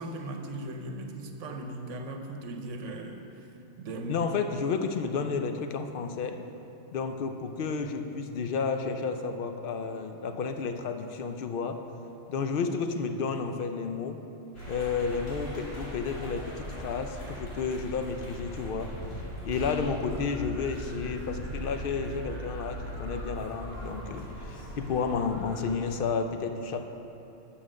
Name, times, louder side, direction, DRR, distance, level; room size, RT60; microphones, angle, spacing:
voice 1, 0.0-3.2 3.8-4.3, right 1 dB, 75° right, 4 dB, 1.1 m, -38 dB
voice 2, 4.1-6.4 6.9-11.8 12.3-14.2 14.7-18.9 19.4-26.9, left 5 dB, 60° left, 6 dB, 0.6 m, -31 dB
sound 1, 14.5-25.7, equal, 80° left, 3.0 m, -39 dB
7.3 x 6.9 x 6.2 m, 2.9 s
omnidirectional pair, 1.3 m